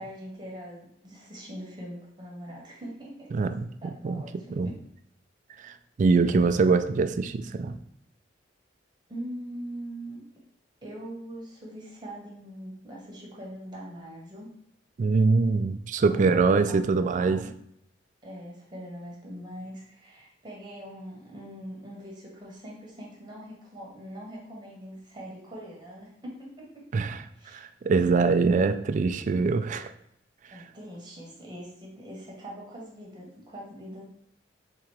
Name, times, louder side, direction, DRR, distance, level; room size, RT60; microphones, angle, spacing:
voice 1, 0.0-3.3 3.8-4.8 6.2-6.6 9.1-10.2 10.8-14.5 16.1-17.5 18.2-27.0 27.3-27.7 30.5-34.0, equal, 25° right, -3 dB, 1.1 m, -42 dB
voice 2, 3.3-4.2 4.5-4.7 5.6-7.8 15.0-17.5 26.9-27.2 27.5-29.9 30.5-30.6, right 4 dB, 45° right, 10 dB, 0.3 m, -24 dB
3.7 x 2.9 x 4.6 m, 0.74 s
head